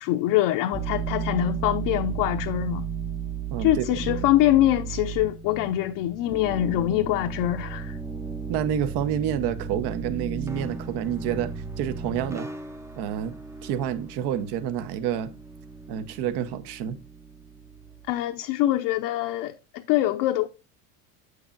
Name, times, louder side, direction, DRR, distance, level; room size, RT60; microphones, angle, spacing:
voice 1, 0.0-2.9 3.6-8.0 18.1-20.5, left 14 dB, 60° left, 0.7 m, -24 dB
sound 1, 0.7-18.1, right 6 dB, 5° right, 0.6 m, -35 dB
voice 2, 3.5-4.0 8.5-11.5 11.8-12.5 13.0-13.3 13.6-15.3 15.9-17.0, right 9 dB, 55° right, 1.0 m, -28 dB
7.7 x 6.5 x 2.5 m
supercardioid pair, 95°, 47 cm